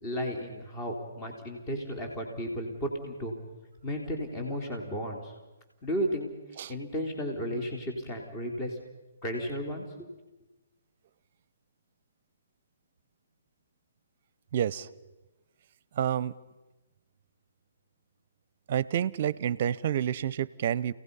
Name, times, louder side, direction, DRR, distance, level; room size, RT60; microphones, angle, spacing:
voice 1, 0.0-3.3 3.8-5.3 5.8-6.3 6.7-8.8 9.2-10.1, equal, 25° left, 2 dB, 3.6 m, -34 dB
voice 2, 14.5-14.9 15.9-16.4 18.7-20.9, right 10 dB, 50° right, 21 dB, 0.7 m, -29 dB
29.5 x 18.0 x 5.6 m, 1.1 s
figure-of-eight pair, 135°, 0 cm